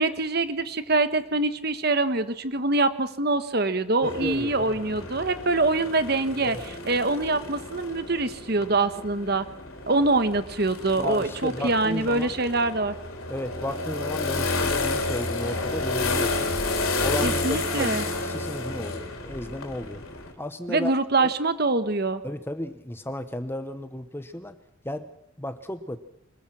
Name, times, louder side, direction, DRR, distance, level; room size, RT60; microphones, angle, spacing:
voice 1, 0.0-9.5 9.9-12.9 17.2-18.0 20.7-22.2, right 2 dB, 50° right, 11 dB, 1.3 m, -24 dB
sound 1, 4.0-20.3, left 3 dB, 85° left, 4.2 m, -31 dB
voice 2, 4.0-4.8 6.4-6.6 11.0-12.3 13.3-16.6 17.0-20.0 20.4-20.9 21.2-21.3 22.2-24.6 24.8-25.1 25.4-26.0, left 1 dB, 10° left, 10 dB, 1.0 m, -34 dB
25.0 x 21.5 x 6.0 m, 0.75 s
head